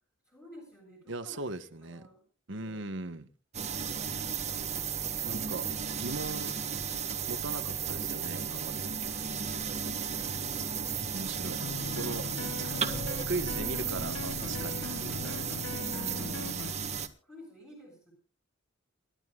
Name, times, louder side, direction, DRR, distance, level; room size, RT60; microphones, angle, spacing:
voice 1, 0.2-2.2 3.7-5.2 5.7-6.9 8.8-9.4 17.2-18.1, equal, 15° left, 6.5 m, -56 dB
voice 2, 1.1-2.0 2.5-3.3 5.2-5.7 6.0-6.5 7.3-8.8 11.1-11.6 12.0-12.3 13.3-15.4, right 2 dB, 60° right, 1.3 m, -38 dB
sound 1, 3.5-17.1, right 6 dB, 35° right, 1.6 m, -34 dB
sound 2, 11.6-16.7, left 3 dB, 85° left, 0.9 m, -39 dB
29.0 x 12.0 x 2.4 m
head